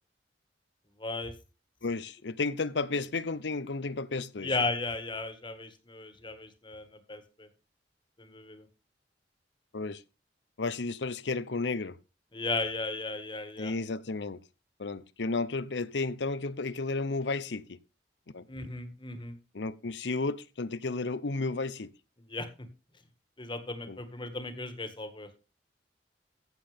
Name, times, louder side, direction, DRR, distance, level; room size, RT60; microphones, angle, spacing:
voice 1, 1.0-1.3 4.4-7.5 8.2-8.7 12.3-13.7 18.5-19.4 22.2-22.5 23.4-25.3, left 3 dB, 30° left, 1.8 m, -35 dB
voice 2, 1.8-4.6 9.7-10.0 10.6-12.0 13.6-14.4 14.8-17.8 18.3-18.4 19.5-21.9 23.9-24.0, left 3 dB, 80° left, 0.8 m, -33 dB
15.0 x 7.7 x 3.5 m
head